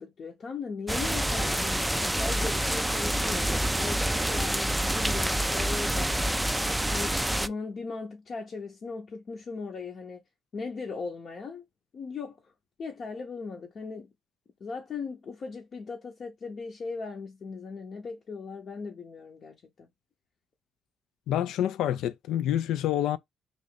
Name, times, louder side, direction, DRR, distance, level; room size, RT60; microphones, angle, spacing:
voice 1, 0.0-6.1 6.9-10.2 10.5-11.6 11.9-12.5 12.8-14.1 14.6-19.9, left 4 dB, 50° left, 0.8 m, -38 dB
sound 1, 0.9-7.5, right 1 dB, 5° right, 0.3 m, -27 dB
voice 2, 21.3-23.2, left 11 dB, 85° left, 0.3 m, -27 dB
3.1 x 2.5 x 3.9 m
cardioid pair, 90°, 0 cm